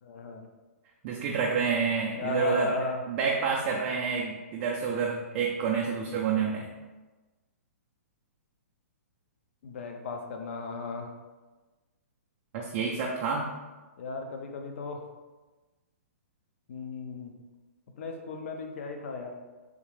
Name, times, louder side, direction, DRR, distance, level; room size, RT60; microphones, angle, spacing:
voice 1, 0.0-0.5 2.2-3.0 9.6-11.1 14.0-15.0 16.7-17.3 18.0-19.4, left 3 dB, 55° left, 4 dB, 0.5 m, -35 dB
voice 2, 1.0-6.7 12.5-13.5, right 5 dB, 35° right, -2 dB, 0.4 m, -29 dB
3.5 x 2.4 x 3.2 m, 1.2 s
hypercardioid pair, 150°, 8 cm